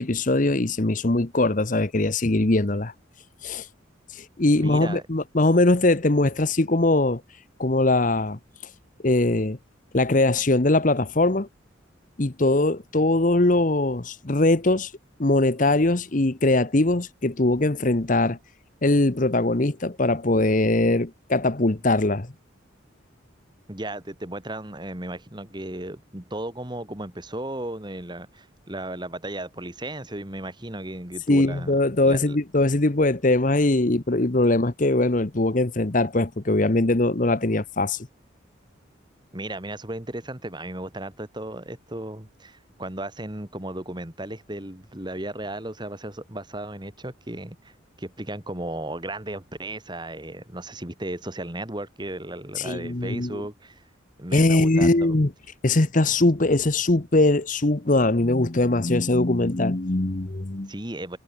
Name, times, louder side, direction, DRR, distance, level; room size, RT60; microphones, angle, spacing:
voice 1, 0.0-2.9 3.4-3.7 4.1-7.2 7.6-8.4 9.0-9.6 9.9-11.5 12.2-14.9 15.2-18.4 18.8-22.3 31.3-38.1 52.6-53.4 54.3-55.3 55.6-60.7, left 2 dB, 40° left, 1.0 m, -21 dB
voice 2, 4.6-5.0 23.7-32.4 39.3-53.8 54.2-55.1 60.7-61.2, right 1 dB, 20° right, 2.3 m, -35 dB
head